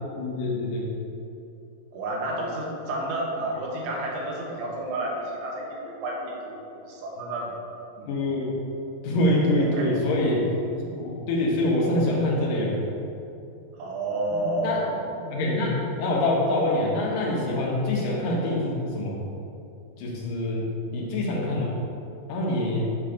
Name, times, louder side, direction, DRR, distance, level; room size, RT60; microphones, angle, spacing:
voice 1, 0.2-0.9 8.1-8.5 9.0-10.5 10.9-12.8 14.3-14.9 15.3-19.1 20.0-21.7 22.3-22.9, left 1 dB, 70° left, -4 dB, 2.7 m, -25 dB
voice 2, 1.9-7.5 8.0-8.1 9.6-9.9 13.8-14.8, right 1 dB, 80° right, -2 dB, 3.0 m, -31 dB
8.6 x 3.3 x 6.3 m, 2.7 s
omnidirectional pair, 4.4 m